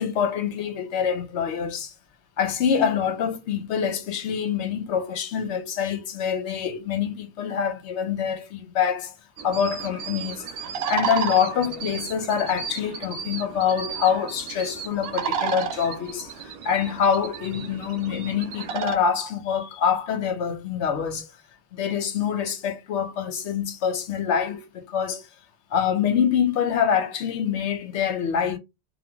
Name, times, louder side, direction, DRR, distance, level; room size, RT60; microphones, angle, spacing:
voice 1, 0.0-1.9 2.4-9.1 9.4-21.3 21.7-25.3 25.7-28.6, left 7 dB, 75° left, 0.9 m, -25 dB
sound 1, 9.4-19.0, right 7 dB, 65° right, 0.7 m, -33 dB
3.0 x 2.4 x 2.2 m
omnidirectional pair, 1.2 m